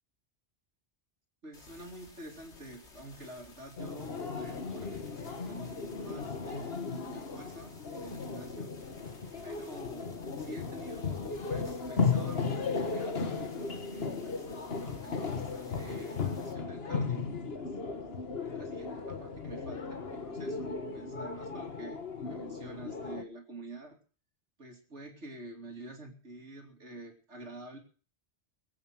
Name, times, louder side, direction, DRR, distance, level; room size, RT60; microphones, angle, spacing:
voice 1, 1.4-8.7 9.4-17.8 18.4-24.0 24.6-27.8, right 1 dB, 85° right, 2 dB, 3.1 m, -48 dB
sound 1, 1.5-16.5, left 3 dB, 90° left, 2.7 m, -56 dB
sound 2, 3.8-23.2, left 4 dB, 60° left, 1.7 m, -36 dB
22.0 x 8.6 x 5.9 m, 0.40 s
omnidirectional pair, 1.2 m